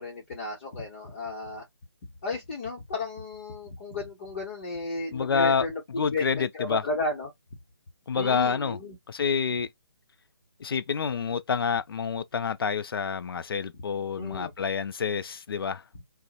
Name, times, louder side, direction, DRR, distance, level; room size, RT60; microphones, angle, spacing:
voice 1, 0.0-1.6 2.2-7.3 8.1-8.9 14.2-14.5, left 2 dB, 30° left, 0.8 m, -34 dB
voice 2, 5.1-6.8 8.1-8.8 9.1-9.7 10.6-15.8, left 6 dB, 65° left, 0.4 m, -28 dB
2.8 x 2.1 x 2.4 m
figure-of-eight pair, 150°, 13 cm